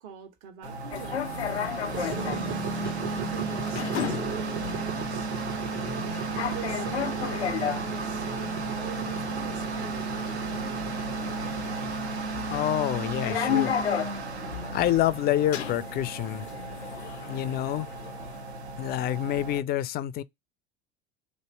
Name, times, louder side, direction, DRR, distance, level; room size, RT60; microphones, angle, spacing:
voice 1, 0.0-1.2 1.9-2.7 3.1-5.3 6.3-8.3 8.6-10.7, right 8 dB, 60° right, 1.4 m, -43 dB
sound 1, 0.6-19.6, right 3 dB, 90° right, 1.1 m, -34 dB
sound 2, 0.9-18.4, left 8 dB, 90° left, 0.5 m, -35 dB
sound 3, 1.9-11.9, right 6 dB, 35° right, 0.9 m, -38 dB
voice 2, 12.5-13.7 14.7-16.5 17.2-17.9 18.8-20.2, left 12 dB, 30° left, 0.4 m, -27 dB
3.0 x 2.7 x 4.4 m
hypercardioid pair, 80°, 32 cm